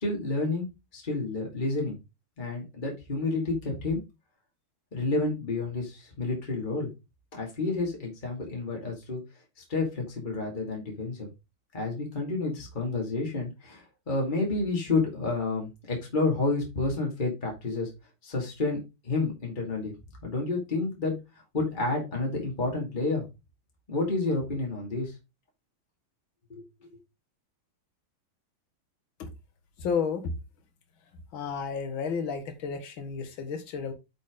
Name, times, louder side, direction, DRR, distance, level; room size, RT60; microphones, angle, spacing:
voice 1, 0.0-0.7 0.9-2.0 2.4-4.0 4.9-6.9 7.3-9.2 9.6-11.3 11.7-17.9 18.2-18.8 19.0-19.9 20.2-21.2 21.5-23.2 23.9-25.1 26.5-26.6, left 3 dB, 20° left, 0 dB, 2.5 m, -30 dB
voice 2, 29.8-30.3 31.3-33.9, left 6 dB, 70° left, 7 dB, 2.2 m, -32 dB
8.4 x 5.2 x 3.8 m, 0.25 s
omnidirectional pair, 2.3 m